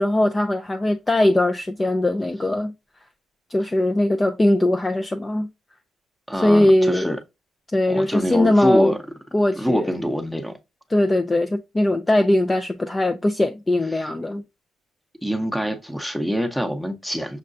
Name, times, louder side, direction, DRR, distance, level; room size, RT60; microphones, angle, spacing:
voice 1, 0.0-2.7 3.5-5.5 6.4-7.1 7.7-8.9 9.3-9.9 10.9-14.4, left 1 dB, 20° left, 0.4 m, -20 dB
voice 2, 6.3-7.2 7.9-9.0 9.6-10.6 13.9-14.1 15.2-17.4, equal, ahead, 0.8 m, -25 dB
6.4 x 2.2 x 2.5 m
cardioid pair, 90°, 0 cm